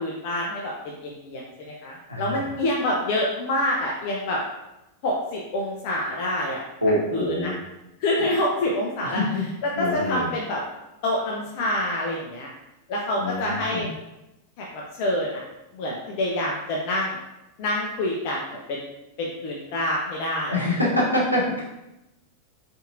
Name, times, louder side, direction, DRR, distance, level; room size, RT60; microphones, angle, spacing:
voice 1, 0.0-4.4 5.0-6.6 7.1-7.5 8.0-9.2 9.8-10.6 11.0-12.5 12.9-13.9 14.6-15.4 15.7-17.2 17.6-18.8 19.2-20.6, left 1 dB, 45° left, -2 dB, 0.6 m, -27 dB
voice 2, 2.1-2.6 6.8-7.6 9.0-9.4 9.8-10.3 13.2-13.9 20.5-21.7, left 1 dB, 90° left, -4 dB, 0.8 m, -25 dB
4.4 x 2.8 x 2.5 m, 0.93 s
figure-of-eight pair, 90°, 0 cm